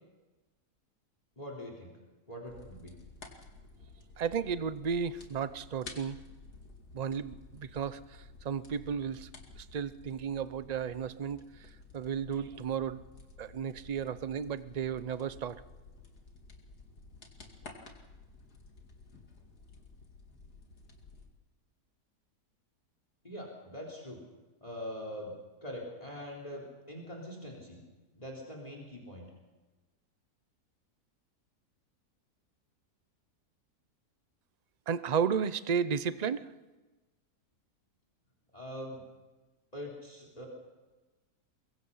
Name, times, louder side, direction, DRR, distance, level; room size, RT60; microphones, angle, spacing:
voice 1, 1.4-1.9 2.3-2.9 23.2-24.2 24.6-25.4 25.6-27.8 28.1-29.3 38.5-39.0 39.7-40.5, equal, 25° left, 0 dB, 4.0 m, -43 dB
sound 1, 2.4-21.3, left 3 dB, 75° left, 2.9 m, -53 dB
voice 2, 4.2-6.2 6.9-9.3 9.6-13.0 13.4-15.6 34.9-36.5, right 7 dB, 45° right, 14 dB, 0.5 m, -33 dB
23.5 x 23.0 x 5.7 m, 1.2 s
omnidirectional pair, 1.7 m